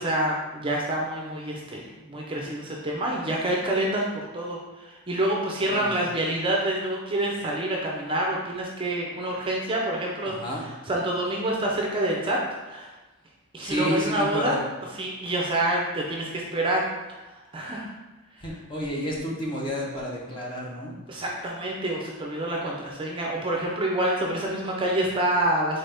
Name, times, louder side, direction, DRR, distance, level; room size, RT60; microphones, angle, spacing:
voice 1, 0.0-10.3 10.9-12.4 12.6-12.9 13.5-14.6 15.0-16.9 17.5-17.9 21.1-25.8, right 1 dB, 25° right, -2 dB, 0.5 m, -27 dB
voice 2, 5.6-6.0 10.2-10.6 13.6-14.6 18.4-20.9, equal, 20° left, -3 dB, 0.8 m, -30 dB
4.0 x 3.8 x 3.4 m, 1.2 s
head